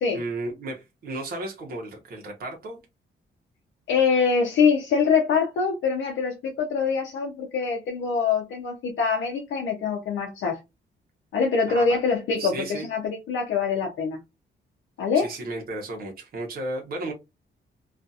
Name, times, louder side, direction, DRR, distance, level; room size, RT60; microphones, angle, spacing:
voice 1, 0.1-2.8 11.7-12.0 12.4-12.9 15.1-17.1, right 2 dB, 50° right, 0.8 m, -34 dB
voice 2, 3.9-10.6 11.3-14.2 15.0-15.3, left 5 dB, 80° left, 0.6 m, -24 dB
2.7 x 2.4 x 2.3 m
wide cardioid pair, 170°, 19 cm